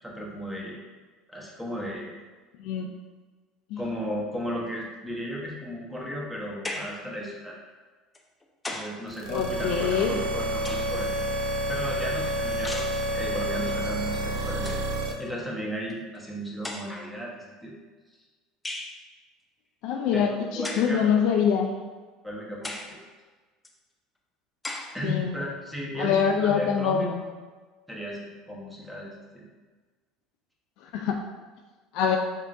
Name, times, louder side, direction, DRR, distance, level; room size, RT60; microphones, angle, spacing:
voice 1, 0.0-0.8 1.3-2.1 3.8-7.6 8.7-11.2 11.7-14.8 15.2-17.7 20.1-21.1 22.2-23.0 24.9-27.1 27.9-29.4, equal, 5° right, -4 dB, 1.2 m, -35 dB
sound 1, 6.6-7.1 8.1-9.0 10.1-11.1 12.6-13.0 14.1-14.2 14.5-14.9 15.9-16.0 16.6-17.1 18.6-19.0 20.6-21.0 21.6-21.7 22.6-23.0 23.6-23.7 24.6-25.0, left 2 dB, 15° left, 0.6 m, -37 dB
sound 2, 9.1-15.1, right 1 dB, 70° right, 0.6 m, -29 dB
voice 2, 9.3-10.2 19.8-21.7 25.0-25.3 26.0-27.2 30.9-31.2 31.9-32.2, left 7 dB, 65° left, 3 dB, 0.3 m, -24 dB
4.5 x 3.5 x 2.5 m, 1.4 s
hypercardioid pair, 80°, 0 cm